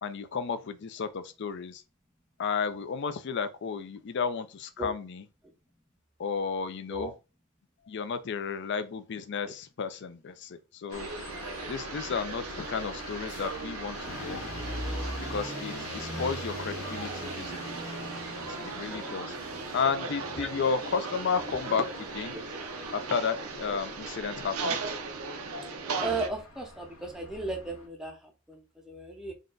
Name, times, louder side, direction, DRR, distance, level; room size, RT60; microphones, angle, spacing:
voice 1, 0.0-1.8 2.4-5.2 6.2-7.1 7.9-11.1 11.7-14.4 15.2-17.8 18.4-19.4 19.7-22.4 22.9-24.8, left 5 dB, 55° left, 0.4 m, -33 dB
sound 1, 10.9-27.9, left 1 dB, 70° left, 1.3 m, -42 dB
sound 2, 10.9-26.3, right 4 dB, 85° right, 0.6 m, -38 dB
voice 2, 26.0-29.3, right 2 dB, 5° right, 0.5 m, -35 dB
3.8 x 2.2 x 3.8 m
head